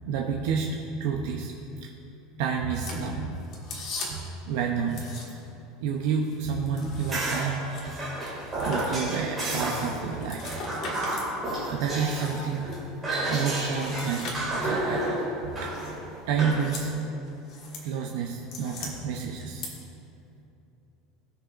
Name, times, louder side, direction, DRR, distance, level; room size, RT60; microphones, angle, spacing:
voice 1, 0.1-1.5 1.8-1.9 2.4-3.3 4.0-5.1 5.8-8.0 8.6-10.4 10.8-10.9 11.7-12.8 13.3-15.9 16.3-16.9 17.8-19.6, right 6 dB, 60° right, 0 dB, 0.7 m, -30 dB
sound 1, 2.7-4.4 4.9-5.6 5.9-11.3 11.7-12.8 13.5-14.8 15.7-16.0 16.4-16.9 17.2-17.9 18.2-18.9 19.4-19.7, left 3 dB, 35° left, 1.5 m, -40 dB
sound 2, 7.1-10.0 10.4-12.8 13.0-16.7, right 1 dB, 15° right, 2.3 m, -31 dB
18.5 x 6.4 x 2.6 m, 2.8 s
cardioid pair, 180°, 0 cm